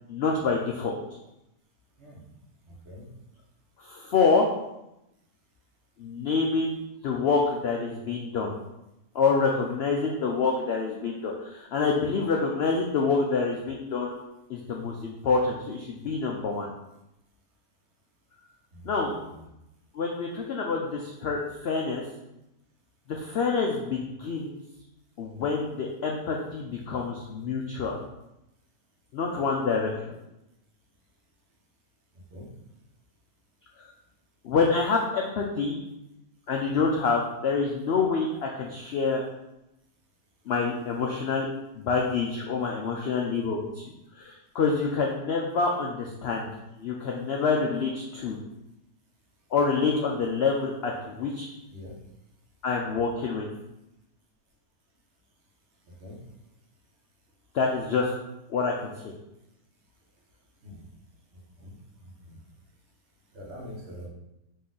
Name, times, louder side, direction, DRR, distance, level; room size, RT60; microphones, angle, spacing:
voice 1, 0.1-0.9 3.8-4.5 6.0-6.8 7.0-8.5 9.1-14.2 14.5-16.7 18.8-19.1 19.9-22.0 23.1-24.6 25.2-28.0 29.1-29.9 34.4-35.8 36.5-39.2 40.5-41.5 41.7-43.8 44.2-46.5 46.8-48.4 49.5-51.5 52.6-53.5 57.5-58.1 58.5-59.1, left 4 dB, 90° left, 0 dB, 0.5 m, -27 dB
voice 2, 2.7-3.1 18.7-19.3 32.3-32.5 51.7-51.9 56.0-56.2 60.6-60.8 61.6-61.7 62.0-62.4 63.3-64.1, equal, 50° right, -2 dB, 1.1 m, -44 dB
4.1 x 2.8 x 3.7 m, 0.89 s
omnidirectional pair, 1.6 m